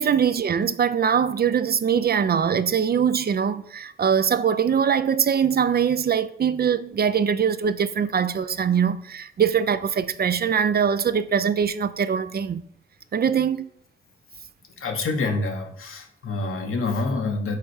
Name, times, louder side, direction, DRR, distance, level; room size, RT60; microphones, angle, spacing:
voice 1, 0.0-12.6 13.1-13.7, right 7 dB, 50° right, 0.4 m, -22 dB
voice 2, 14.8-17.6, left 3 dB, 90° left, 1.0 m, -27 dB
5.5 x 4.3 x 4.8 m
cardioid pair, 65°, 21 cm